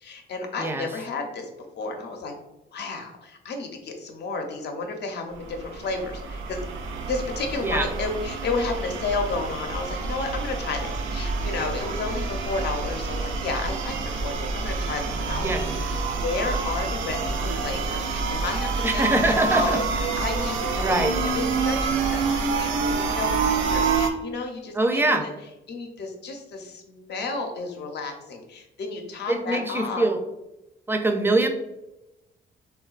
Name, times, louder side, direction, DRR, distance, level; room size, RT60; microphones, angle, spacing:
voice 1, 0.0-1.5 1.7-2.3 2.7-6.6 7.1-15.7 16.2-19.8 20.2-20.9 21.3-22.2 22.5-25.3 25.7-30.1, left 3 dB, 60° left, 4 dB, 0.6 m, -32 dB
sound 1, 5.4-24.1, right 4 dB, 75° right, 0.4 m, -27 dB
voice 2, 18.8-19.8 20.8-21.1 24.7-25.3 29.3-30.2 30.9-31.5, right 2 dB, 10° right, 5 dB, 0.4 m, -23 dB
3.7 x 2.2 x 2.3 m, 0.95 s
cardioid pair, 90°, 20 cm